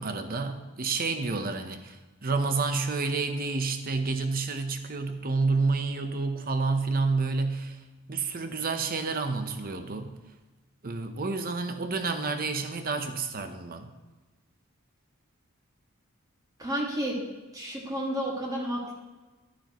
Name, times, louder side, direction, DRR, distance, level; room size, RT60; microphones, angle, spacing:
voice 1, 0.0-2.0 2.2-7.8 8.1-10.1 10.8-13.9, right 4 dB, 40° right, 7 dB, 0.8 m, -29 dB
voice 2, 16.6-17.2 17.5-18.9, equal, 15° right, -2 dB, 1.9 m, -31 dB
11.5 x 9.7 x 3.0 m, 1.2 s
head